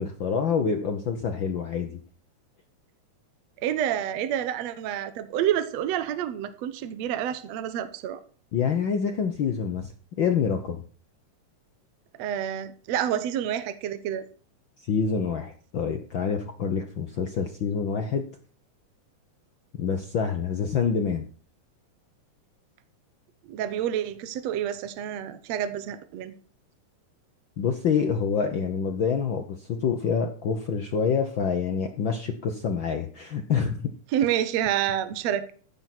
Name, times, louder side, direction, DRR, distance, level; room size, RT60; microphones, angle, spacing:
voice 1, 0.0-2.0 8.5-9.9 10.2-10.8 14.8-18.2 19.7-21.2 27.6-33.9, left 6 dB, 70° left, 1.1 m, -27 dB
voice 2, 3.6-8.2 12.2-14.2 23.5-26.3 34.1-35.5, right 10 dB, 65° right, 2.0 m, -28 dB
15.0 x 7.0 x 6.1 m
omnidirectional pair, 3.7 m